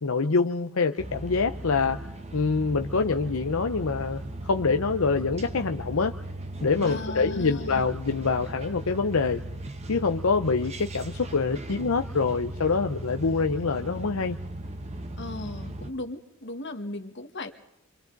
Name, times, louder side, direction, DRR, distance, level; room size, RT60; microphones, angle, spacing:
voice 1, 0.0-2.0 2.3-6.1 6.6-9.4 9.9-14.4, left 4 dB, 85° left, 6 dB, 0.7 m, -25 dB
sound 1, 1.0-15.9, right 1 dB, 30° right, 1.1 m, -37 dB
voice 2, 6.8-7.8 15.2-17.5, left 2 dB, 60° left, 7 dB, 1.6 m, -37 dB
27.5 x 25.0 x 4.0 m, 0.81 s
head